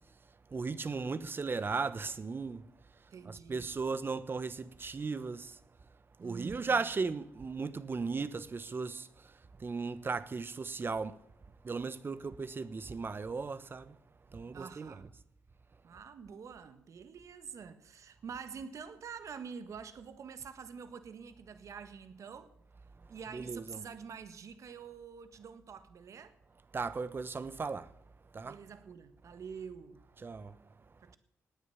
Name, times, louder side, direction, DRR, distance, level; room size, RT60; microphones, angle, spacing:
voice 1, 0.5-2.6 3.3-5.6 6.2-9.1 9.6-11.2 11.6-13.9 14.3-14.9 23.3-23.8 26.7-27.9 28.3-28.6 30.2-30.5, right 4 dB, 40° right, 1.1 m, -36 dB
voice 2, 3.1-3.7 6.2-6.8 14.5-15.1 15.8-22.5 23.1-26.3 28.4-30.0 31.0-31.2, right 6 dB, 65° right, 1.6 m, -47 dB
17.0 x 9.6 x 7.1 m
cardioid pair, 65°, 6 cm